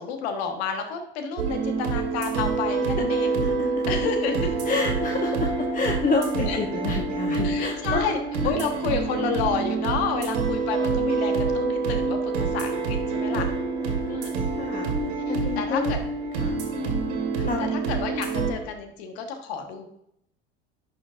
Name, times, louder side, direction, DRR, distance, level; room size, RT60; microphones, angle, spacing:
voice 1, 0.0-3.4 3.9-4.5 6.4-6.6 7.4-8.2 8.4-13.5 14.1-14.4 15.3-16.0 16.8-19.9, left 6 dB, 70° left, 6 dB, 1.4 m, -30 dB
sound 1, 1.4-18.5, right 4 dB, 75° right, 1.7 m, -26 dB
voice 2, 4.7-8.1 13.3-14.9 15.3-15.9 16.3-16.6 17.3-17.7, left 3 dB, 25° left, 2 dB, 0.9 m, -29 dB
11.0 x 5.1 x 2.5 m, 0.74 s
hypercardioid pair, 75°, 33 cm